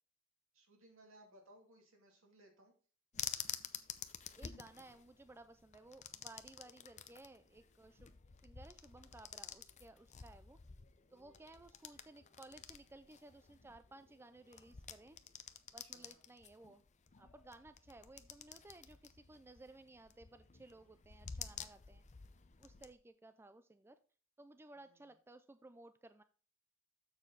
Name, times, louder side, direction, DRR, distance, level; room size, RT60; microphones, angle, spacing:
voice 1, 0.5-2.7 11.1-11.4 15.8-16.2 20.6-21.0 24.8-25.2, right 1 dB, 70° right, 2 dB, 2.4 m, -64 dB
sound 1, 3.1-22.9, left 8 dB, 35° left, 0.6 m, -51 dB
voice 2, 4.4-8.1 8.4-10.6 11.1-15.2 15.7-16.8 17.2-22.0 22.6-24.0 24.4-26.2, right 2 dB, 10° right, 11 dB, 0.3 m, -58 dB
7.2 x 6.6 x 3.8 m, 0.40 s
head